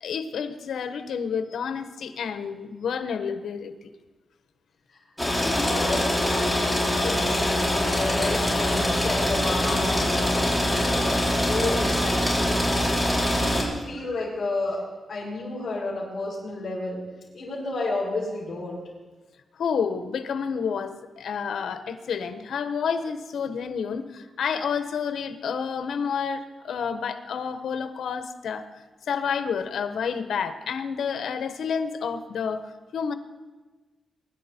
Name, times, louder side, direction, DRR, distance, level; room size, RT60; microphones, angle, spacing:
voice 1, 0.0-3.9 19.6-28.6 29.1-32.6 32.9-33.1, left 6 dB, 90° left, 9 dB, 1.2 m, -29 dB
sound 1, 5.2-13.6, left 1 dB, 5° left, 4.6 m, -24 dB
voice 2, 5.4-12.6 13.1-14.8 15.1-17.0 17.3-18.8, left 2 dB, 45° left, -11 dB, 6.9 m, -31 dB
23.5 x 11.5 x 4.5 m, 1.2 s
wide cardioid pair, 110°, 0 cm